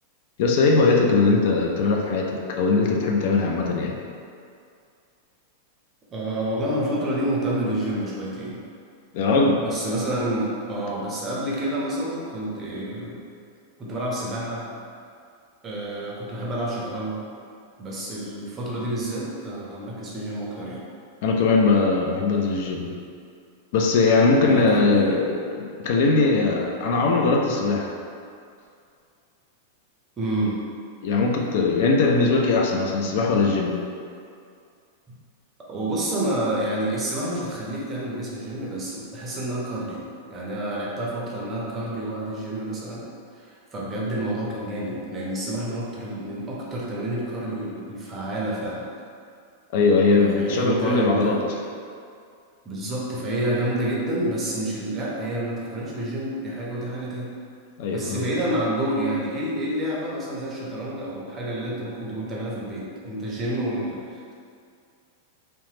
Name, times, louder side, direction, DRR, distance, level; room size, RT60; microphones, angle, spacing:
voice 1, 0.4-4.0 9.1-9.6 21.2-22.9 23.7-27.9 31.0-33.8 49.7-51.5 57.8-58.3, left 3 dB, 55° left, 0 dB, 0.3 m, -20 dB
voice 2, 6.1-8.6 9.5-13.2 13.8-14.6 15.6-17.2 17.8-20.8 24.4-25.1 30.2-30.6 35.7-43.1 43.3-48.9 50.2-51.4 52.7-57.3 57.9-64.3, right 1 dB, 20° right, -5 dB, 0.5 m, -29 dB
2.8 x 2.0 x 3.1 m, 2.3 s
supercardioid pair, 150°, 0 cm